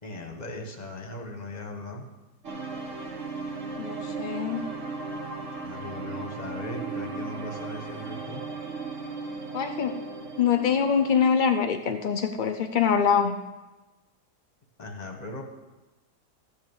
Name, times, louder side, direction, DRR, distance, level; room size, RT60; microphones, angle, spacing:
voice 1, 0.0-2.1 5.6-8.4 14.8-15.4, left 1 dB, 25° left, 3 dB, 1.3 m, -38 dB
sound 1, 2.4-11.3, right 3 dB, 50° right, 1.5 m, -36 dB
voice 2, 3.8-4.6 9.5-10.0 10.4-13.4, left 7 dB, 80° left, 6 dB, 0.4 m, -24 dB
13.5 x 6.5 x 7.2 m, 1.1 s
omnidirectional pair, 1.8 m